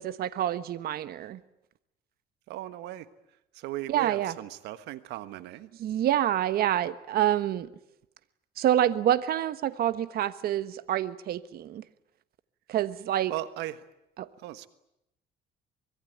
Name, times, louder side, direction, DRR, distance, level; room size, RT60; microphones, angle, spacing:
voice 1, 0.0-1.4 3.9-4.3 5.8-7.7 8.6-11.8 12.7-13.3 14.2-14.3, right 11 dB, 65° right, 1.3 m, -27 dB
voice 2, 2.5-3.1 3.5-5.7 13.3-13.8 14.4-14.7, right 14 dB, 85° right, 1.4 m, -37 dB
24.5 x 21.5 x 9.2 m
cardioid pair, 110°, 17 cm